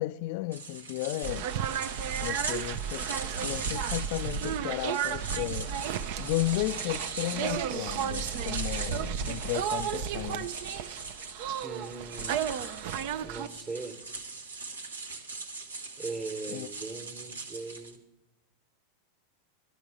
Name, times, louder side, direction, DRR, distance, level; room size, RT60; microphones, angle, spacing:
voice 1, 0.0-1.5 2.2-3.1 3.4-5.7 6.2-10.5 16.5-16.7, left 17 dB, 55° left, 0.4 m, -34 dB
sound 1, 0.5-18.0, right 3 dB, 85° right, 1.2 m, -40 dB
sound 2, 1.2-13.5, right 8 dB, 55° right, 0.6 m, -33 dB
voice 2, 11.6-12.5 13.2-14.0 16.0-18.0, right 3 dB, 25° right, 1.3 m, -39 dB
13.0 x 12.0 x 4.9 m
figure-of-eight pair, 90°, 0 cm